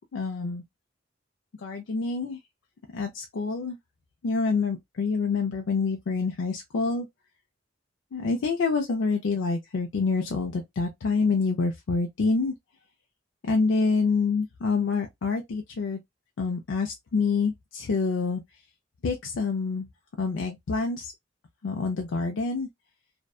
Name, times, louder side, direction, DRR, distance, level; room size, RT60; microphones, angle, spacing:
voice 1, 0.1-0.6 1.6-2.4 2.9-3.8 4.2-7.1 8.1-12.5 13.5-16.0 16.4-18.4 19.0-19.9 20.2-21.1 21.6-22.7, left 4 dB, 75° left, 0.4 m, -27 dB
2.6 x 2.2 x 2.3 m
head